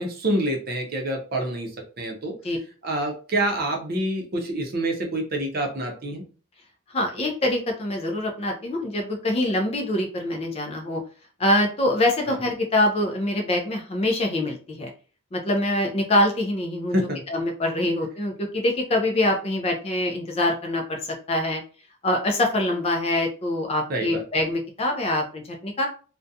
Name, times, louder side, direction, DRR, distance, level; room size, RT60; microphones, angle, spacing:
voice 1, 0.0-1.7 2.0-2.3 2.8-6.2 12.3-12.4 16.9-17.2 23.9-24.2, right 1 dB, 45° right, 1 dB, 0.6 m, -27 dB
voice 2, 6.9-11.0 11.4-14.9 15.3-17.0 17.3-21.0 21.3-21.6 22.0-25.9, left 1 dB, 30° left, 2 dB, 0.4 m, -24 dB
2.4 x 2.2 x 2.6 m, 0.38 s
head